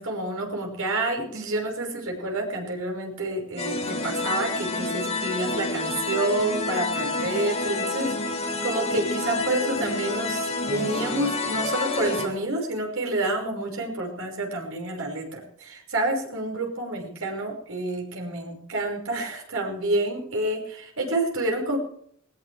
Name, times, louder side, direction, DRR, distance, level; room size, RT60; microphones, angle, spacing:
voice 1, 0.0-21.8, right 2 dB, 75° right, 1 dB, 5.6 m, -29 dB
sound 1, 3.6-12.3, left 3 dB, 30° left, 3.2 m, -28 dB
20.0 x 19.5 x 3.4 m, 0.65 s
head